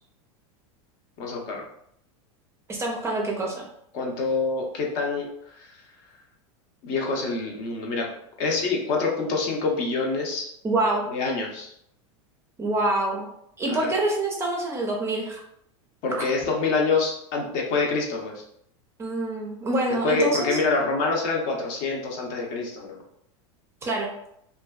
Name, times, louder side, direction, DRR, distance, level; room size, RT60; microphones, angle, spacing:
voice 1, 1.2-1.6 3.9-5.3 5.5-5.7 6.8-8.1 8.4-10.5 11.1-11.7 13.7-13.9 16.0-18.4 20.0-23.0, left 4 dB, 50° left, 0 dB, 0.6 m, -26 dB
voice 2, 2.7-3.6 10.6-11.0 12.6-13.3 13.6-15.4 19.0-20.6 23.8-24.1, right 2 dB, 15° right, -1 dB, 0.4 m, -26 dB
2.5 x 2.2 x 2.2 m, 0.73 s
supercardioid pair, 125°, 16 cm